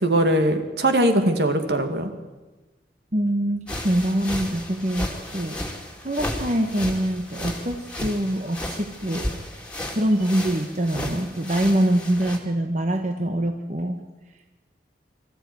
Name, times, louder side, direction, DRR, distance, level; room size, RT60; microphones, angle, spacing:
voice 1, 0.0-2.1, right 1 dB, 65° right, 6 dB, 2.3 m, -21 dB
voice 2, 3.1-5.6 6.0-9.3 9.9-14.0, right 1 dB, 40° right, 5 dB, 1.3 m, -24 dB
sound 1, 3.7-12.4, left 1 dB, 5° left, 2.5 m, -34 dB
24.5 x 14.0 x 9.5 m, 1.2 s
head